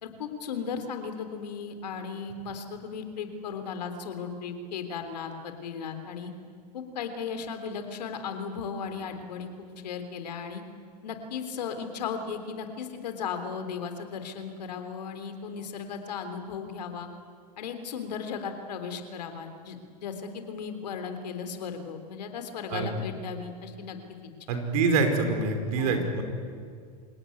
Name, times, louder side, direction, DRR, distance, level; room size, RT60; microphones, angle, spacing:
voice 1, 0.0-6.3 6.7-10.6 11.0-17.1 17.6-24.0 24.2-24.6 25.8-26.1, left 6 dB, 75° left, 8 dB, 3.6 m, -36 dB
voice 2, 24.5-26.2, right 4 dB, 60° right, 6 dB, 4.9 m, -25 dB
27.5 x 17.5 x 9.5 m, 2.1 s
hypercardioid pair, 110°, 21 cm